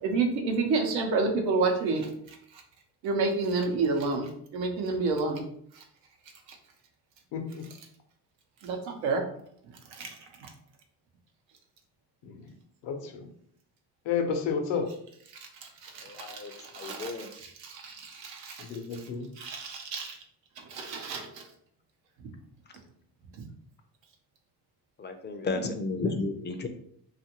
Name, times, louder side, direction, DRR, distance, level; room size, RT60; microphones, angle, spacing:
voice 1, 0.0-2.1 3.0-5.4 8.6-8.8 9.0-9.2 9.9-10.1 10.4-10.5 15.6-18.6 19.4-20.2 20.7-21.4 23.4-23.5 25.6-25.7, right 3 dB, 85° right, 3 dB, 0.7 m, -29 dB
voice 2, 7.3-7.7 12.2-12.4 12.8-13.3 14.1-14.9 18.6-19.3, left 6 dB, 75° left, 5 dB, 0.7 m, -31 dB
voice 3, 16.0-17.3 25.0-26.7, left 3 dB, 25° left, 6 dB, 0.4 m, -33 dB
2.5 x 2.4 x 2.8 m, 0.65 s
supercardioid pair, 75°, 43 cm